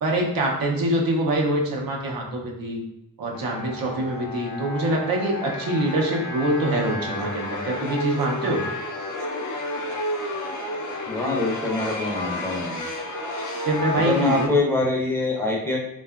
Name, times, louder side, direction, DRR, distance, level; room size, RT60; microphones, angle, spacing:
voice 1, 0.0-2.8 3.2-8.6 13.7-14.5, right 1 dB, 85° right, -1 dB, 0.6 m, -24 dB
sound 1, 3.3-14.5, left 1 dB, 60° left, 0.6 m, -31 dB
voice 2, 11.1-12.8 14.0-15.8, left 2 dB, 5° left, -2 dB, 0.5 m, -24 dB
2.7 x 2.3 x 2.3 m, 0.85 s
cardioid pair, 65°, 34 cm